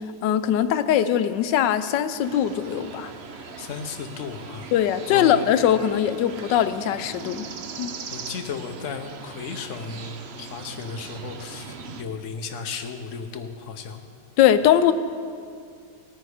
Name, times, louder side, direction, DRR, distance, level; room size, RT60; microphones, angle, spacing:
voice 1, 0.2-3.1 4.7-7.5 7.8-7.9 14.4-14.9, left 10 dB, 85° left, 11 dB, 1.3 m, -21 dB
sound 1, 2.2-12.0, right 5 dB, 55° right, 0.7 m, -40 dB
voice 2, 3.6-4.7 5.1-5.3 8.1-14.0, left 5 dB, 55° left, 5 dB, 1.1 m, -34 dB
18.0 x 9.2 x 4.9 m, 2.2 s
omnidirectional pair, 1.9 m